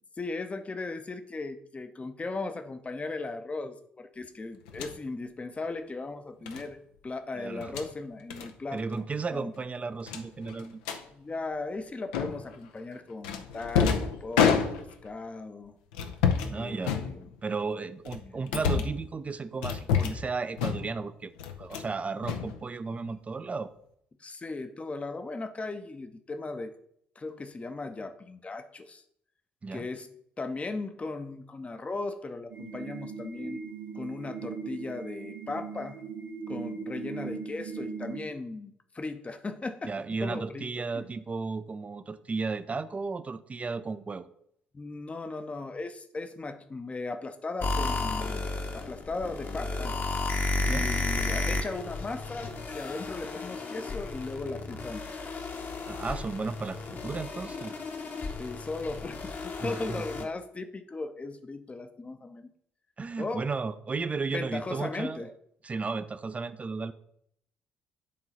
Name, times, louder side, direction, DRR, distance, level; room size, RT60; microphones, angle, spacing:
voice 1, 0.0-6.8 7.0-9.0 9.3-9.5 11.1-15.8 16.5-17.3 18.2-18.6 24.2-26.8 27.2-29.0 29.7-33.6 33.9-36.1 36.5-39.9 40.2-41.1 44.7-48.5 48.7-49.9 50.6-55.2 58.4-62.5 63.2-63.5 64.3-65.3, left 3 dB, 25° left, 9 dB, 0.7 m, -37 dB
sound 1, 4.7-5.0 6.5-6.7 7.5-7.9 8.3-8.5 8.8-9.0 9.3-9.4 10.1-11.0 12.1-12.6 13.2-15.1 15.9-16.5 16.8-17.5 18.0-19.0 19.6-20.3 20.6-21.0 21.4-21.9 22.2-23.1, left 7 dB, 70° left, 0.6 m, -29 dB
voice 2, 7.3-7.7 8.7-10.8 16.4-17.0 17.4-23.7 29.6-29.9 39.8-44.3 50.7-50.9 55.9-57.7 59.6-60.1 63.0-65.3 65.6-66.9, right 4 dB, 25° right, 12 dB, 0.5 m, -34 dB
sound 2, 32.5-38.2, right 5 dB, 65° right, 1.7 m, -39 dB
sound 3, 47.6-60.2, left 3 dB, 40° left, 1.1 m, -33 dB
8.6 x 3.8 x 5.5 m, 0.70 s
figure-of-eight pair, 50°, 5 cm